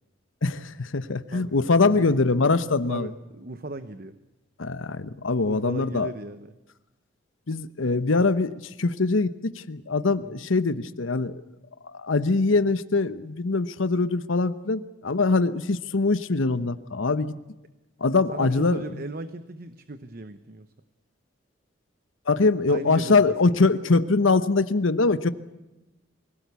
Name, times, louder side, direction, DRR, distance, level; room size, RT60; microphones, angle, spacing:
voice 1, 0.4-3.1 4.6-6.1 7.5-11.4 11.8-17.3 18.0-18.8 22.3-25.3, left 3 dB, 85° left, 13 dB, 0.9 m, -23 dB
voice 2, 1.3-2.4 2.9-4.2 5.4-6.5 10.2-10.5 18.3-20.7 22.7-23.5, right 2 dB, 50° right, 12 dB, 0.9 m, -37 dB
24.5 x 17.5 x 8.3 m, 1.0 s
head